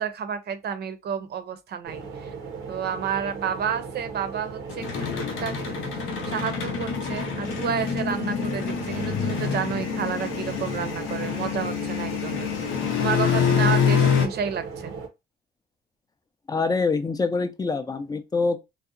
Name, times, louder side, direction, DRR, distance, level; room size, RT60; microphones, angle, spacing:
voice 1, 0.0-2.3 2.7-5.6 6.3-12.5 13.0-14.9, right 7 dB, 55° right, 0.6 m, -30 dB
sound 1, 1.8-15.1, right 5 dB, 90° right, 0.6 m, -37 dB
sound 2, 4.7-14.3, left 7 dB, 80° left, 0.6 m, -26 dB
voice 2, 16.5-18.6, left 4 dB, 20° left, 0.4 m, -25 dB
2.7 x 2.1 x 2.5 m
cardioid pair, 90°, 20 cm